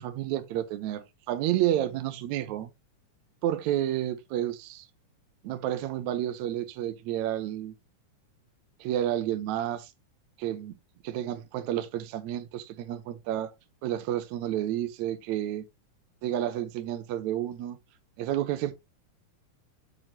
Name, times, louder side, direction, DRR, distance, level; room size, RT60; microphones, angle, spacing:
voice 1, 0.0-2.7 3.4-4.9 5.4-7.7 8.8-9.9 10.4-10.7 11.0-13.5 13.8-15.6 16.2-17.8 18.2-18.7, right 12 dB, 75° right, 1.9 m, -30 dB
8.7 x 4.4 x 3.1 m
omnidirectional pair, 3.9 m